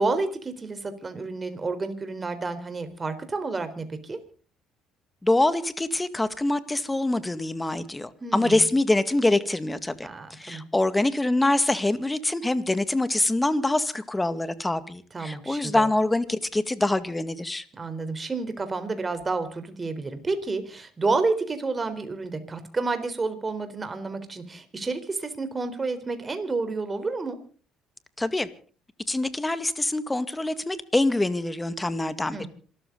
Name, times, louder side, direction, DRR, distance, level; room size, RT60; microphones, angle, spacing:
voice 1, 0.0-4.2 8.2-8.6 10.0-10.6 15.1-15.9 17.7-27.4 32.3-32.5, right 3 dB, 30° right, 4.0 m, -30 dB
voice 2, 5.2-17.6 28.2-28.5 29.1-32.5, left 2 dB, 15° left, 2.0 m, -25 dB
27.0 x 13.5 x 4.0 m
supercardioid pair, 70°, 0 cm